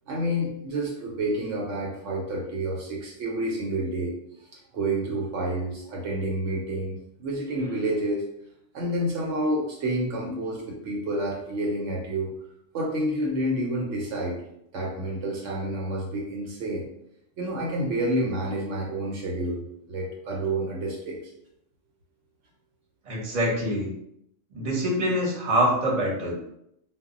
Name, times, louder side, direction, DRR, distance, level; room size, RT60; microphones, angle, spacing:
voice 1, 0.1-4.1 4.7-8.2 8.7-12.3 12.7-14.4 14.7-16.8 17.4-19.6 19.9-21.2, right 1 dB, 70° right, -2 dB, 0.9 m, -29 dB
voice 2, 23.0-23.9 24.5-26.3, equal, 35° right, -3 dB, 0.8 m, -25 dB
2.2 x 2.0 x 3.7 m, 0.77 s
omnidirectional pair, 1.3 m